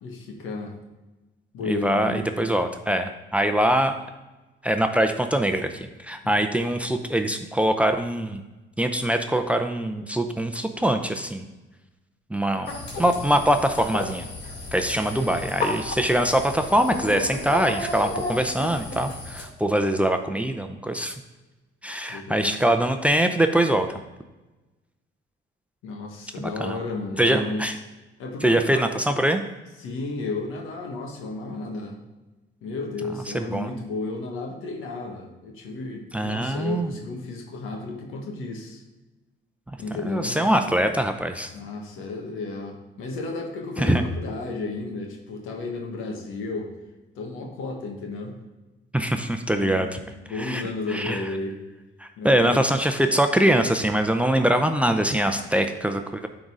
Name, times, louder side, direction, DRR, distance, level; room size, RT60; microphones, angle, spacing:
voice 1, 0.0-0.8 1.5-2.2 6.2-6.4 22.1-22.6 25.8-27.7 28.2-29.0 29.8-32.0 32.6-38.8 39.8-40.4 41.5-46.7 47.1-48.3 49.5-51.6 52.2-52.6, left 3 dB, 90° left, 1 dB, 1.4 m, -33 dB
voice 2, 1.7-3.9 4.6-8.4 8.8-11.4 12.3-12.7 13.0-14.3 14.7-21.2 21.8-23.9 26.4-26.8 27.2-27.8 28.4-29.4 33.3-33.7 36.1-36.9 40.0-41.5 43.8-44.0 48.9-50.0 50.4-50.6 50.9-51.2 52.0-56.3, right 1 dB, 5° right, 6 dB, 0.6 m, -23 dB
sound 1, 12.6-19.4, left 2 dB, 60° left, 2.6 m, -33 dB
9.3 x 4.0 x 4.8 m, 1.1 s
cardioid pair, 90°, 20 cm